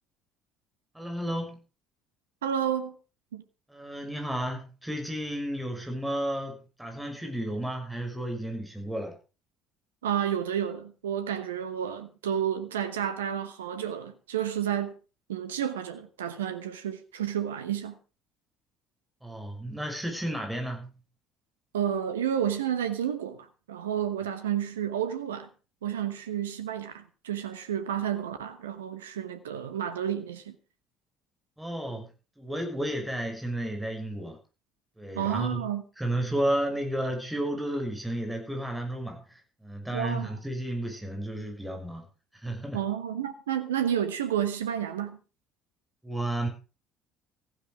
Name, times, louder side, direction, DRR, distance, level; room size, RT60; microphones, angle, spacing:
voice 1, 0.9-1.6 3.7-9.2 19.2-20.9 31.6-32.1 32.4-34.4 35.0-35.6 36.0-42.8 46.0-46.5, right 1 dB, 5° right, 6.2 m, -32 dB
voice 2, 2.4-2.9 3.3-3.4 10.0-14.9 15.3-18.0 21.7-25.5 25.8-30.5 35.1-35.8 39.9-40.3 42.7-45.2, right 9 dB, 75° right, 1.1 m, -31 dB
15.5 x 12.0 x 4.9 m
figure-of-eight pair, 55°, 0 cm